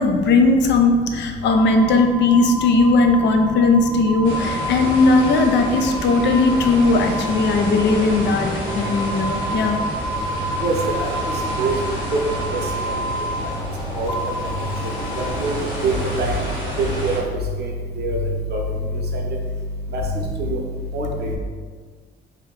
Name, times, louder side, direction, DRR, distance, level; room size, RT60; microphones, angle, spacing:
voice 1, 0.0-9.8, left 3 dB, 65° left, 5 dB, 0.4 m, -17 dB
sound 1, 1.4-15.3, equal, 15° left, 0.6 m, -30 dB
sound 2, 4.2-17.2, right 1 dB, 80° left, 1.4 m, -30 dB
voice 2, 10.6-11.1 11.6-11.7 12.5-12.6 12.9-13.0 14.0-14.1 15.4-15.5 15.8-15.9 16.2-16.4 16.8-17.2 17.6-17.7 18.0-18.2 18.5-18.6 19.1-19.2 19.9-20.0 20.4-20.6 20.9-21.4, right 2 dB, 55° right, 0 dB, 0.6 m, -23 dB
2.7 x 2.1 x 3.7 m, 1.5 s
cardioid pair, 90°, 20 cm